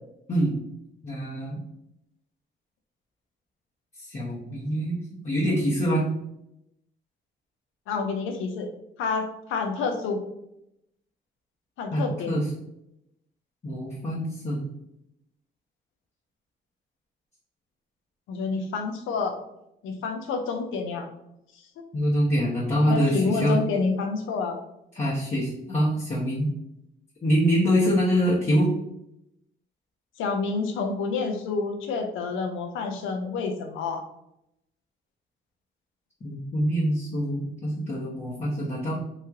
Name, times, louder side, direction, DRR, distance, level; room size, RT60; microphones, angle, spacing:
voice 1, 1.0-1.6 4.1-5.0 5.2-6.1 11.9-12.5 13.6-14.7 21.9-23.6 24.9-26.5 27.2-28.7 36.2-38.9, equal, 35° left, -8 dB, 1.1 m, -25 dB
voice 2, 7.9-8.7 9.0-10.2 11.8-12.3 18.3-19.4 19.8-21.1 22.9-24.6 30.2-34.0, left 4 dB, 90° left, 4 dB, 0.5 m, -28 dB
3.1 x 2.8 x 3.6 m, 0.83 s
cardioid pair, 90°, 20 cm